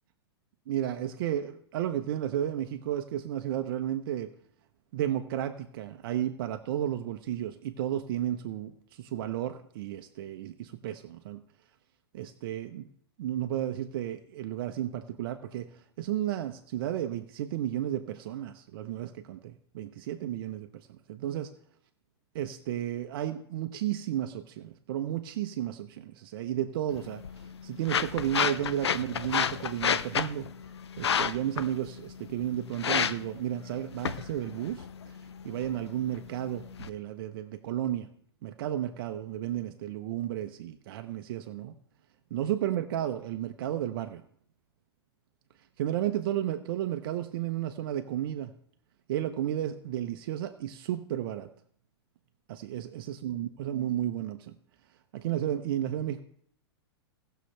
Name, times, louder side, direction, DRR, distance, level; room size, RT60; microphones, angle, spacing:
voice 1, 0.7-4.3 4.9-11.4 12.1-12.9 13.2-15.7 16.0-21.5 22.3-27.2 27.6-30.5 31.0-35.1 35.4-38.1 38.4-41.7 42.3-44.2 45.8-48.5 49.1-51.5 52.5-54.5 55.1-56.2, right 11 dB, 60° right, 7 dB, 0.9 m, -33 dB
sound 1, 26.9-36.9, left 7 dB, 85° left, 0.7 m, -32 dB
18.0 x 6.8 x 3.4 m, 0.62 s
hypercardioid pair, 120°, 14 cm